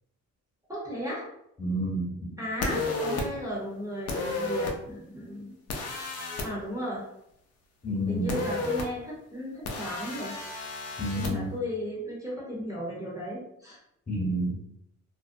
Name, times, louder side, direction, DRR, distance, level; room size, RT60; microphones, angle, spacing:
voice 1, 0.7-1.3 2.4-5.5 6.4-7.1 8.1-10.4 11.2-13.8, equal, 10° right, -5 dB, 0.8 m, -35 dB
voice 2, 1.6-2.3 7.8-8.4 11.0-11.5 14.1-14.6, equal, 25° left, -4 dB, 1.0 m, -29 dB
sound 1, 2.6-3.2 4.1-4.7 5.7-6.5 8.3-8.8 9.7-11.3, left 3 dB, 55° left, 0.6 m, -32 dB
2.5 x 2.0 x 2.5 m, 0.78 s
cardioid pair, 90°, 30 cm